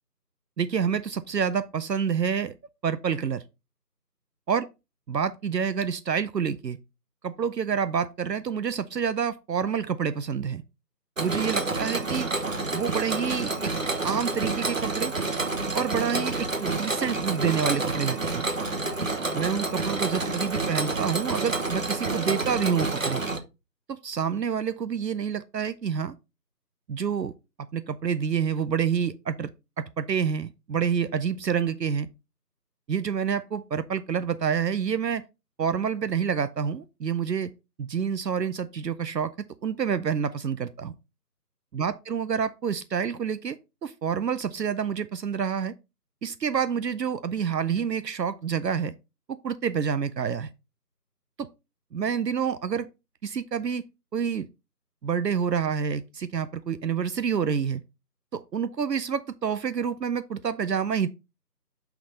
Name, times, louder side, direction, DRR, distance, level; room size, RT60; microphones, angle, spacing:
voice 1, 0.6-2.5 2.8-3.4 4.5-4.6 5.1-6.8 7.2-10.6 11.2-12.3 12.7-13.7 14.0-15.1 15.7-18.4 19.3-23.2 23.9-26.2 26.9-27.3 27.7-29.5 29.8-32.1 32.9-35.2 35.6-37.5 37.8-39.3 39.6-40.9 41.7-45.7 46.2-48.9 49.3-50.5 51.4-51.5 51.9-52.9 53.2-53.8 54.1-54.5 55.0-57.8 58.3-61.1, right 7 dB, 75° right, 0.6 m, -28 dB
Mechanisms, 11.2-23.4, right 3 dB, 50° right, 0.9 m, -29 dB
5.8 x 5.2 x 4.0 m
figure-of-eight pair, 170°, 50 cm